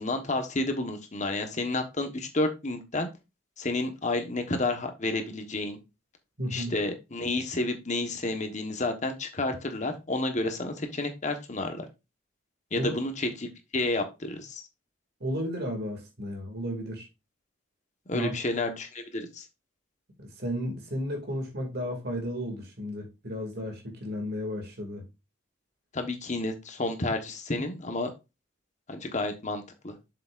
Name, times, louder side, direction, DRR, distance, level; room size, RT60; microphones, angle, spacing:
voice 1, 0.0-3.1 3.6-5.8 6.5-11.9 12.7-14.6 18.1-19.4 25.9-28.1 28.9-29.9, left 2 dB, 35° left, 1.2 m, -30 dB
voice 2, 6.4-6.7 12.8-12.9 15.2-17.1 18.1-18.3 20.2-25.0, equal, 55° right, 2.3 m, -33 dB
7.5 x 6.9 x 2.5 m
head